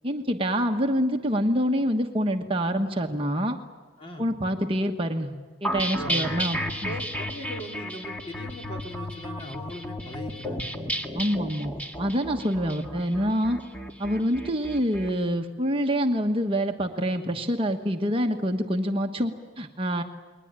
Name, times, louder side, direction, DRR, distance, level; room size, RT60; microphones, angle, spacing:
voice 1, 0.0-3.6 4.2-5.3 5.6-6.9 11.1-11.7 12.0-13.6 14.0-20.0, equal, 30° right, 3 dB, 1.3 m, -26 dB
voice 2, 4.0-4.3 5.9-6.3 6.6-10.8, equal, 30° left, 1 dB, 3.6 m, -39 dB
sound 1, 5.6-15.1, equal, 10° left, 1.9 m, -33 dB
29.5 x 21.5 x 8.9 m, 1.3 s
head